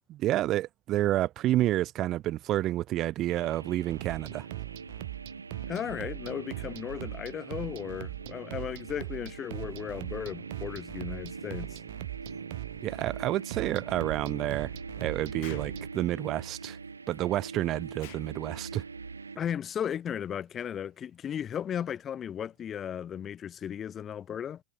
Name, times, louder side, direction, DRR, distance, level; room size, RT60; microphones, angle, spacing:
voice 1, 0.1-4.5 12.8-14.7 15.0-16.8 17.1-18.8, right 14 dB, 35° right, 1.5 m, -29 dB
sound 1, 3.3-19.4, right 4 dB, 75° right, 1.8 m, -43 dB
sound 2, 3.9-15.9, right 22 dB, 50° right, 1.9 m, -41 dB
voice 2, 5.7-11.8 19.4-24.6, left 9 dB, 25° left, 1.8 m, -35 dB
Explosion, 15.4-15.8 18.0-18.3, left 23 dB, 50° left, 3.7 m, -48 dB
figure-of-eight pair, 90°, 0 cm